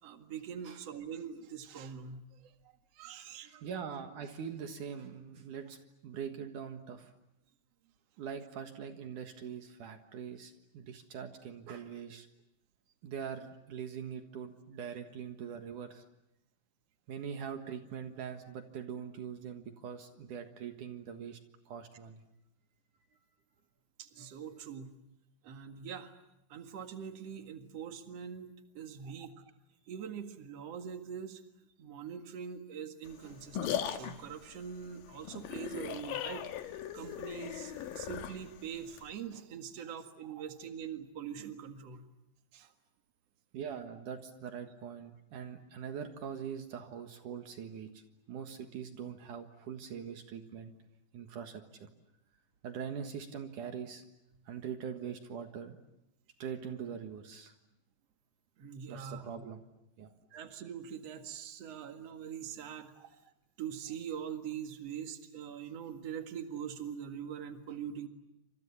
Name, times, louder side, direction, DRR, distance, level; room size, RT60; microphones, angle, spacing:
voice 1, 0.0-2.5 2.9-3.6 24.0-24.9 25.4-26.1 26.5-29.3 29.9-31.4 31.8-42.0 42.5-42.7 58.6-59.3 60.3-62.9 63.6-68.1, right 8 dB, 50° right, 6 dB, 2.7 m, -43 dB
voice 2, 3.2-5.8 6.0-7.1 8.2-12.3 13.0-16.0 17.1-21.4 21.7-22.2 29.0-29.3 40.2-40.4 43.5-48.0 48.3-50.8 51.1-51.9 52.6-54.0 54.5-55.8 56.4-57.5 58.9-59.6 60.0-60.1 63.0-63.1, right 7 dB, 65° right, 6 dB, 3.0 m, -43 dB
sound 1, 33.1-39.1, left 10 dB, 70° left, 3.0 m, -39 dB
29.0 x 26.5 x 7.1 m, 0.86 s
omnidirectional pair, 4.2 m